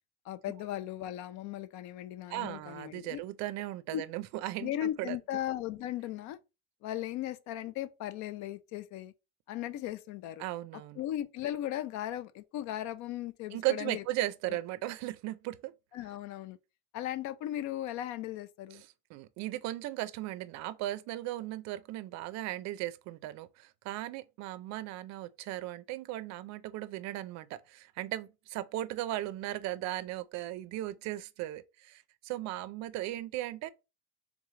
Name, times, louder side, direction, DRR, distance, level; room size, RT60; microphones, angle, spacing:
voice 1, 0.3-3.2 3.9-4.0 4.6-6.4 6.8-9.1 9.5-10.4 11.0-14.0 14.5-14.6 15.9-16.6 16.9-18.8, left 13 dB, 65° left, 0.5 m, -37 dB
voice 2, 2.3-5.2 10.4-11.0 13.5-15.7 18.7-33.7, right 15 dB, 60° right, 0.4 m, -37 dB
3.5 x 3.2 x 3.6 m
cardioid pair, 170°, 30 cm